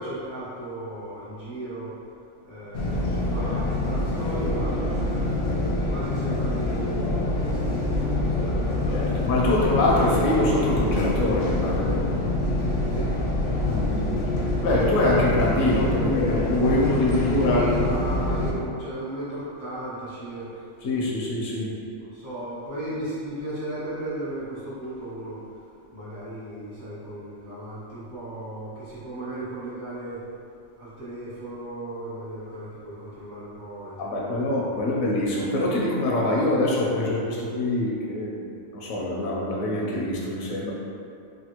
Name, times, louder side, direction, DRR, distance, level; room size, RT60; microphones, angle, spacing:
voice 1, 0.0-1.9 2.4-9.0 12.9-14.1 16.9-20.7 22.0-25.4 25.9-30.2 30.8-35.0, right 1 dB, 40° right, -11 dB, 0.8 m, -36 dB
sound 1, 2.7-18.5, left 2 dB, 65° left, 0.7 m, -25 dB
voice 2, 8.9-12.1 13.6-17.8 20.8-21.7 34.0-40.7, left 1 dB, 90° left, -4 dB, 1.1 m, -24 dB
3.3 x 2.4 x 2.9 m, 2.5 s
omnidirectional pair, 1.4 m